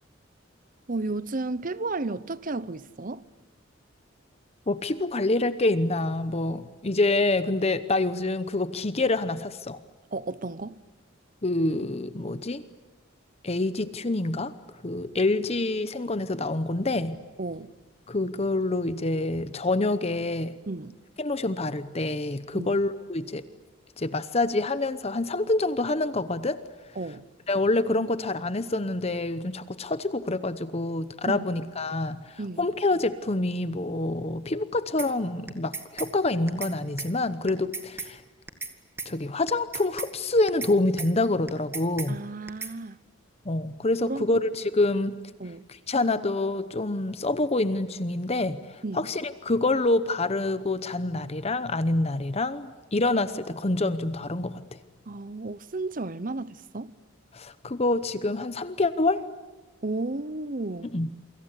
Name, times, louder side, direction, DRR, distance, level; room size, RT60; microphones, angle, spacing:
voice 1, 0.9-3.2 10.1-10.7 17.4-17.7 20.7-20.9 22.6-22.8 27.0-27.2 31.3-31.4 32.4-32.7 42.1-43.0 44.1-44.3 45.4-45.6 48.8-49.1 55.1-56.9 59.8-60.9, right 2 dB, 45° right, 0.8 m, -33 dB
voice 2, 4.7-9.8 11.4-12.6 13.4-14.5 14.8-17.2 18.1-20.5 21.2-23.4 24.0-26.6 27.5-38.2 39.1-42.2 43.5-45.1 45.9-54.8 57.3-59.2 60.9-61.1, left 2 dB, 30° left, 0.9 m, -26 dB
sound 1, 35.0-35.1 35.5-36.1 36.5-36.7 37.0-37.1 37.5-38.1 38.5-38.7 39.0-39.1 39.5-40.1 40.5-40.7 41.0-41.1 41.5-42.1 42.5-42.7, right 4 dB, 10° right, 1.9 m, -35 dB
28.0 x 25.0 x 8.4 m
head